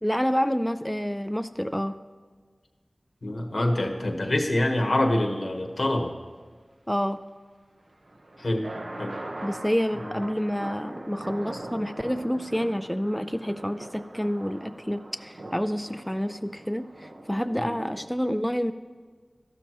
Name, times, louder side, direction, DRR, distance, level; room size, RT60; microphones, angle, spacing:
voice 1, 0.0-2.0 6.9-7.2 9.4-18.7, equal, 5° left, 9 dB, 0.3 m, -28 dB
voice 2, 3.2-6.1 8.4-8.7 9.0-9.2 10.0-10.1 17.6-17.8, left 1 dB, 75° left, 3 dB, 1.2 m, -26 dB
sound 1, 7.9-18.1, right 1 dB, 75° right, 1.0 m, -41 dB
13.0 x 12.5 x 3.0 m, 1.5 s
wide cardioid pair, 50°, 0 cm